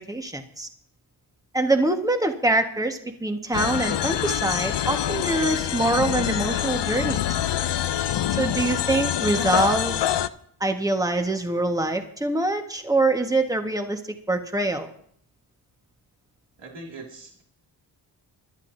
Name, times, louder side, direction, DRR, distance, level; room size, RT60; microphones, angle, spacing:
voice 1, 0.1-0.7 1.5-7.2 8.4-10.0 10.6-14.0 14.3-14.9, right 2 dB, 10° right, 5 dB, 1.5 m, -24 dB
sound 1, 3.5-10.3, left 11 dB, 65° left, 0.6 m, -25 dB
voice 2, 6.9-7.2 16.6-17.4, right 2 dB, 65° right, -1 dB, 2.6 m, -41 dB
24.5 x 11.5 x 2.7 m, 0.64 s
cardioid pair, 60°, 45 cm